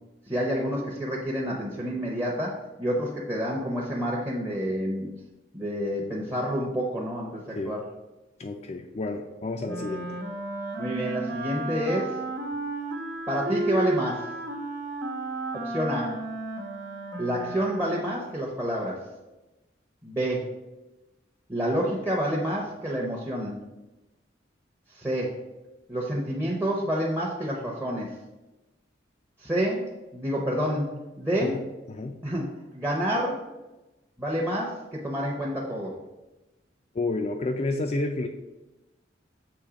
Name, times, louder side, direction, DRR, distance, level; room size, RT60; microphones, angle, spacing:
voice 1, 0.3-5.1 5.5-7.8 10.8-12.2 13.3-14.3 15.5-16.2 17.2-19.0 20.0-20.5 21.5-23.6 24.9-25.4 25.9-28.2 29.4-29.9 30.1-31.6 32.2-33.5 34.2-36.0, equal, 15° right, -4 dB, 0.7 m, -28 dB
voice 2, 8.4-10.2 31.4-32.2 36.9-38.3, left 2 dB, 35° left, 4 dB, 0.3 m, -30 dB
Wind instrument woodwind instrument, 9.6-18.2, right 2 dB, 80° right, 1.1 m, -33 dB
6.9 x 3.1 x 4.9 m, 1.0 s
head